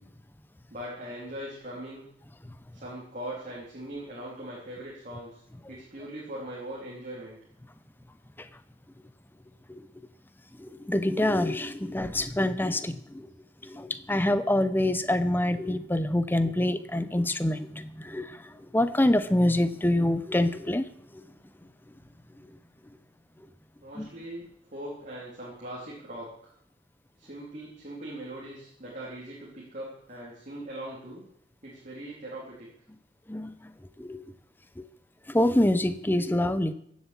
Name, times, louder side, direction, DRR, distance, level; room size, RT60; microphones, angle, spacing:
voice 1, 0.7-2.1 2.7-5.4 5.7-7.4 23.8-26.5 27.2-31.2 31.6-32.7, right 1 dB, 40° right, -5 dB, 3.3 m, -40 dB
voice 2, 10.6-13.3 13.6-18.4 18.7-20.8 24.0-24.1 33.3-33.5 34.0-34.2 34.8-34.9 35.3-36.7, left 1 dB, 10° left, 11 dB, 0.7 m, -26 dB
15.5 x 7.3 x 7.5 m, 0.70 s
head